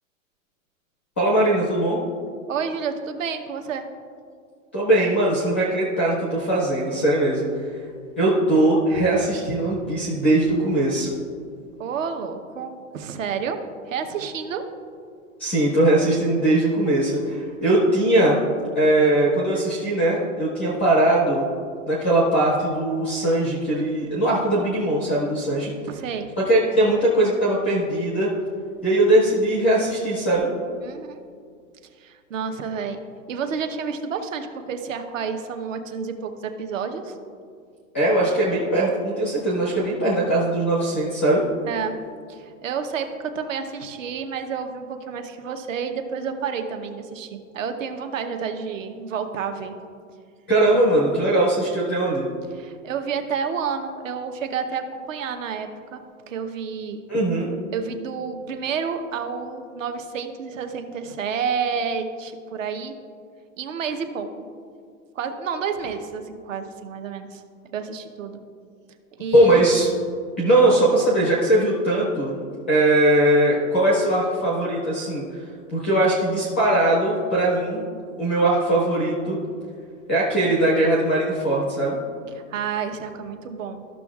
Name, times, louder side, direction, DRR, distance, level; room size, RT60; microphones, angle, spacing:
voice 1, 1.2-2.0 4.7-7.7 8.2-11.1 15.4-18.4 18.7-21.5 21.9-25.7 26.4-28.3 28.8-30.5 37.9-41.4 50.5-52.3 57.1-57.5 69.3-69.9 70.4-72.4 72.7-75.2 75.7-77.8 78.2-79.4 80.1-82.0, right 1 dB, 10° left, -5 dB, 0.4 m, -20 dB
voice 2, 2.5-3.9 11.8-13.6 13.9-14.6 25.9-26.3 30.8-31.2 32.0-33.0 33.3-37.1 41.7-42.0 42.3-49.7 52.6-57.0 57.7-62.9 63.6-64.5 65.1-67.4 67.7-68.4 69.2-69.6 82.3-83.8, right 6 dB, 70° right, 7 dB, 0.9 m, -30 dB
14.0 x 6.2 x 2.4 m, 2.2 s
supercardioid pair, 180°, 40 cm